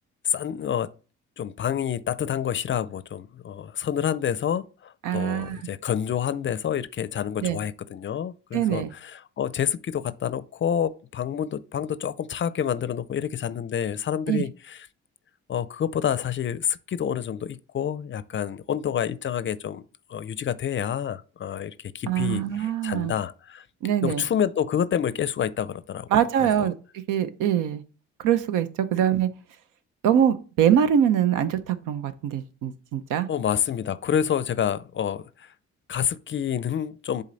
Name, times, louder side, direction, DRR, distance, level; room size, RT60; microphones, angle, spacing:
voice 1, 0.2-0.9 1.4-14.9 15.5-19.8 20.1-23.6 24.0-26.1 26.4-26.5 33.3-35.5 35.9-37.2, left 9 dB, 40° left, 0.4 m, -28 dB
voice 2, 5.0-5.6 7.4-7.6 8.5-8.9 14.3-14.4 22.1-23.2 23.8-24.2 26.1-27.8 28.2-29.3 30.0-33.3, right 9 dB, 85° right, 0.7 m, -23 dB
7.4 x 4.0 x 4.0 m
cardioid pair, 90°, 30 cm